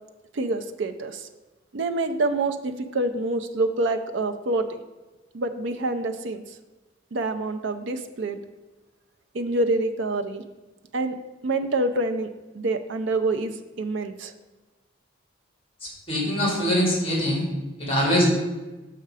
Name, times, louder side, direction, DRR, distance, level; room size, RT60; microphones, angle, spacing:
voice 1, 0.3-1.3 1.7-4.8 5.3-6.4 7.1-8.4 9.3-10.4 10.9-11.2 11.4-12.3 12.5-14.3, right 2 dB, 65° right, 7 dB, 0.5 m, -26 dB
voice 2, 15.8-17.4 17.8-18.3, equal, 30° left, -2 dB, 2.1 m, -23 dB
6.6 x 5.7 x 4.8 m, 1.2 s
head